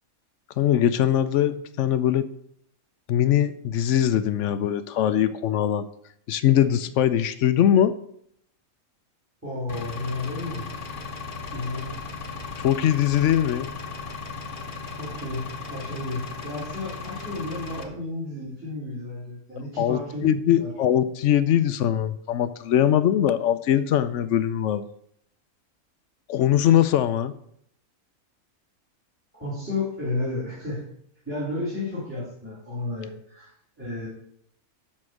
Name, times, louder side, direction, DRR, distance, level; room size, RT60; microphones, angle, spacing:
voice 1, 0.6-2.2 3.1-5.9 6.3-7.9 12.6-13.7 19.8-24.8 26.3-27.3, left 10 dB, 65° left, 13 dB, 0.8 m, -21 dB
voice 2, 9.4-10.7 11.5-12.0 15.0-20.7 29.3-30.8 31.2-33.5 33.8-34.1, left 2 dB, 10° right, -8 dB, 3.4 m, -32 dB
Engine, 9.7-17.8, left 4 dB, 40° left, 1.1 m, -36 dB
11.0 x 4.3 x 6.5 m, 0.70 s
omnidirectional pair, 1.5 m